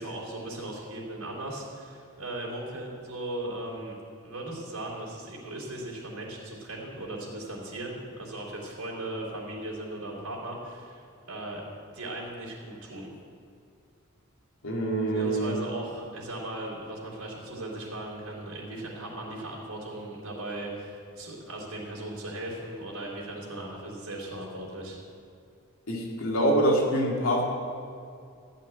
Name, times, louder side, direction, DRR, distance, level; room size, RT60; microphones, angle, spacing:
voice 1, 0.0-4.0 4.2-11.0 11.3-11.6 11.9-13.1 15.1-25.0, right 1 dB, 85° right, -4 dB, 3.5 m, -37 dB
voice 2, 14.6-15.6 25.9-27.4, right 1 dB, 70° left, -1 dB, 2.5 m, -25 dB
14.0 x 6.0 x 9.9 m, 2.3 s
head